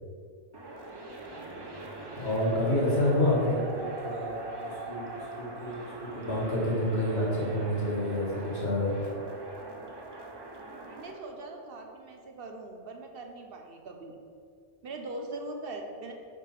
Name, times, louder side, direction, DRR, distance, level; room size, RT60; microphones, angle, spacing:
sound 1, 0.5-11.1, right 2 dB, 30° right, 0.6 m, -41 dB
voice 1, 2.2-4.3 4.6-8.9, left 1 dB, 65° left, -5 dB, 2.1 m, -28 dB
voice 2, 10.9-14.1 14.8-16.1, right 2 dB, 55° right, 3 dB, 1.0 m, -41 dB
6.1 x 4.6 x 5.8 m, 2.3 s
omnidirectional pair, 1.2 m